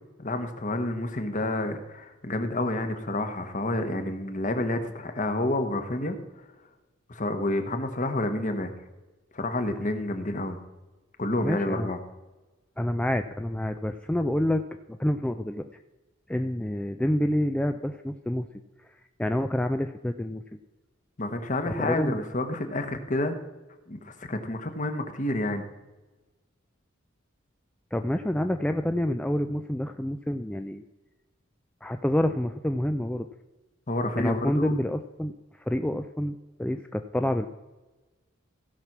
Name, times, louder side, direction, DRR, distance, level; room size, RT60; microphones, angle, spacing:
voice 1, 0.2-6.2 7.1-8.7 9.3-10.6 11.2-12.0 21.2-23.4 23.9-25.7 33.9-34.7, left 1 dB, 40° left, 7 dB, 1.2 m, -29 dB
voice 2, 11.4-11.9 12.8-15.6 16.3-18.5 19.2-20.4 21.6-22.2 27.9-30.8 31.8-33.3 34.2-35.3 35.6-37.5, left 1 dB, 5° left, 7 dB, 0.3 m, -28 dB
15.5 x 5.9 x 6.0 m, 1.2 s
head